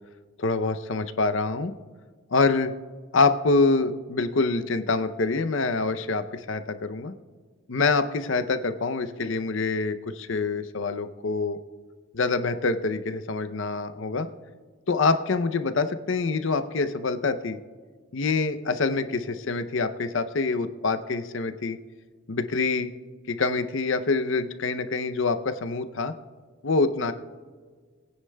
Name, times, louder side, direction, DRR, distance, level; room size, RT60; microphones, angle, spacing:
voice 1, 0.4-1.7 2.3-2.7 3.1-7.1 7.7-11.6 12.1-14.3 14.9-17.6 18.1-21.8 22.3-22.9 23.3-26.1 26.6-27.1, left 3 dB, 60° left, 10 dB, 0.6 m, -25 dB
21.0 x 9.6 x 2.2 m, 1.5 s
head